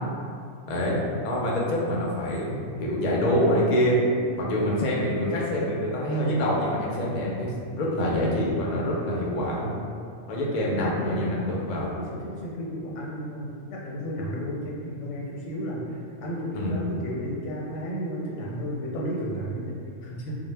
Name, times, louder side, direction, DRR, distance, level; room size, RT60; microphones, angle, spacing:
voice 1, 0.7-4.0 4.4-9.8 10.3-11.9 16.5-16.8, equal, 60° left, -4 dB, 0.4 m, -26 dB
voice 2, 4.1-4.6 10.4-11.2 11.8-20.4, equal, 90° left, -4 dB, 0.9 m, -33 dB
2.0 x 2.0 x 3.2 m, 2.3 s
omnidirectional pair, 1.2 m